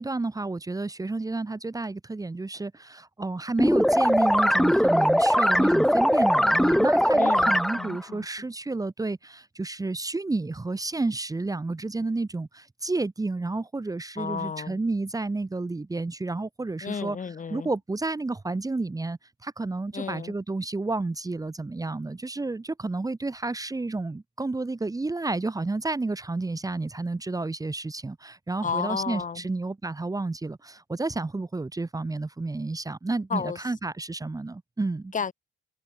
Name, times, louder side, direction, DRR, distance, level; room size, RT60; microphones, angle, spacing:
voice 1, 0.0-17.2 17.5-35.1, right 3 dB, 15° right, 1.6 m, -31 dB
sound 1, 3.6-8.0, equal, ahead, 2.0 m, -21 dB
voice 2, 7.1-8.3 14.2-14.8 16.8-17.7 19.9-20.3 28.6-29.4 33.3-33.6 35.1-35.3, left 6 dB, 40° left, 3.5 m, -32 dB
cardioid pair, 90°, 20 cm